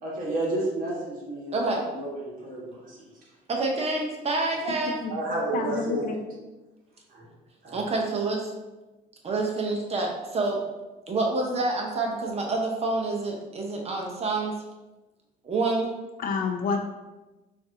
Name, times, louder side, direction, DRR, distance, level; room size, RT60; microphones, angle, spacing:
voice 1, 0.0-3.1 5.1-6.0 7.1-7.3 7.6-7.8, right 2 dB, 55° right, -4 dB, 1.4 m, -31 dB
voice 2, 1.5-1.8 3.5-5.0 7.7-8.5 9.2-10.6 11.1-14.5 15.4-15.9, right 3 dB, 40° right, 0 dB, 0.7 m, -27 dB
voice 3, 4.7-5.2 5.5-6.2 16.2-16.8, left 5 dB, 60° left, 4 dB, 0.5 m, -29 dB
5.1 x 2.5 x 2.7 m, 1.1 s
cardioid pair, 110°, 17 cm